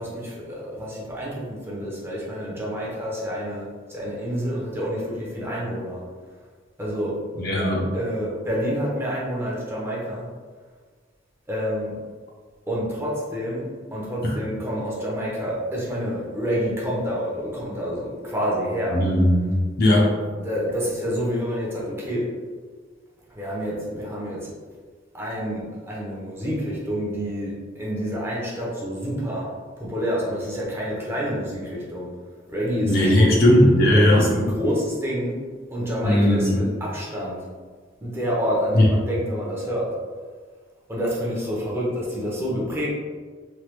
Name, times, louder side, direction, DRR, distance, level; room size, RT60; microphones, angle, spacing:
voice 1, 0.0-6.0 6.8-7.2 7.9-10.3 11.5-12.0 12.7-19.0 20.4-22.3 23.3-24.6 25.1-29.5 29.8-32.1 32.5-33.4 33.9-35.4 35.7-37.4 38.0-39.9 40.9-42.9, equal, 15° right, -6 dB, 0.6 m, -28 dB
voice 2, 7.4-7.9 14.2-14.3 18.9-20.2 32.8-34.3 36.0-36.6 38.7-38.9, left 1 dB, 55° left, -3 dB, 0.6 m, -18 dB
3.2 x 2.2 x 3.0 m, 1.6 s
head